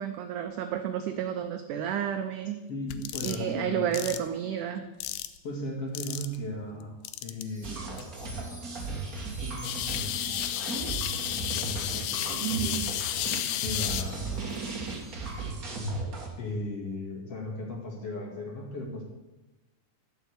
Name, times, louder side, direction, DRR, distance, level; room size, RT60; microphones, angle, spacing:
voice 1, 0.0-2.6 3.2-4.8 12.3-12.8, right 10 dB, 85° right, 7 dB, 1.8 m, -31 dB
voice 2, 2.7-4.1 5.4-6.9 7.2-8.6 9.4-10.8 11.2-12.9 13.6-14.6 16.4-19.0, left 1 dB, 45° left, -1 dB, 2.5 m, -37 dB
sound 1, 2.9-3.4 3.9-4.2 5.0-5.4 6.0-6.4 7.1-7.4 8.0-8.1 9.6-14.0, left 13 dB, 85° left, 2.5 m, -32 dB
Wind chime, 7.4-15.6, equal, 10° right, 2.8 m, -48 dB
sound 2, 7.6-16.3, right 3 dB, 45° right, 1.1 m, -36 dB
12.0 x 6.5 x 8.0 m, 1.1 s
omnidirectional pair, 4.4 m